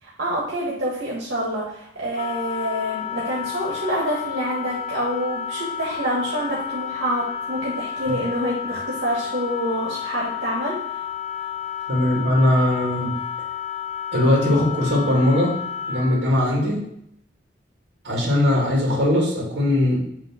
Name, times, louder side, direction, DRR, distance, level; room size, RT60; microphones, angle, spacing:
voice 1, 0.0-10.8, equal, 85° right, -6 dB, 1.8 m, -27 dB
Wind instrument woodwind instrument, 2.1-16.2, left 9 dB, 35° left, 0.5 m, -31 dB
voice 2, 11.9-13.1 14.1-15.5 15.9-16.8 18.0-20.0, left 1 dB, 65° right, -3 dB, 2.4 m, -20 dB
7.5 x 3.0 x 5.7 m, 0.72 s
head